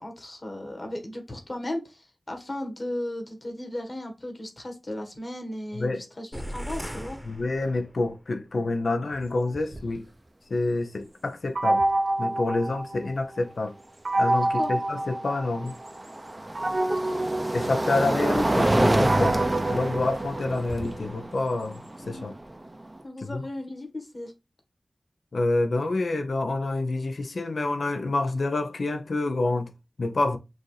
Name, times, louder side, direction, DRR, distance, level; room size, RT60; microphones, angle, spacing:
voice 1, 0.0-5.9 6.2-7.2 14.5-14.7 16.9-17.2 22.0-22.3 23.0-24.3, left 1 dB, 40° left, 1.4 m, -35 dB
sound 1, 6.3-8.2, equal, 5° left, 0.9 m, -37 dB
voice 2, 7.3-10.1 10.5-11.8 12.2-13.7 14.2-15.8 17.5-19.4 19.7-22.3 23.2-23.4 25.3-29.7 30.0-30.4, left 2 dB, 75° left, 0.6 m, -27 dB
sound 2, 9.1-9.2 9.6-10.0 11.8-11.9 14.9-23.0, right 1 dB, 25° right, 0.5 m, -27 dB
sound 3, 11.6-13.4 14.1-15.9 16.6-20.8, right 1 dB, 70° right, 1.3 m, -28 dB
6.3 x 2.6 x 3.2 m
wide cardioid pair, 70°, 0 cm